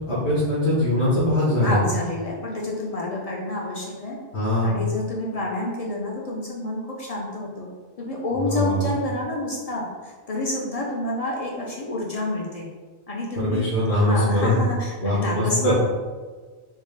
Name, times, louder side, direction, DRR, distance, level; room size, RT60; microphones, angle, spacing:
voice 1, 0.1-1.8 4.3-4.8 8.4-8.9 13.3-14.6 15.0-15.7, left 1 dB, 85° left, -8 dB, 1.2 m, -22 dB
voice 2, 1.6-4.2 4.6-7.7 8.0-12.7 13.1-15.7, left 2 dB, 50° left, -3 dB, 0.4 m, -28 dB
3.5 x 2.3 x 3.2 m, 1.4 s
omnidirectional pair, 1.1 m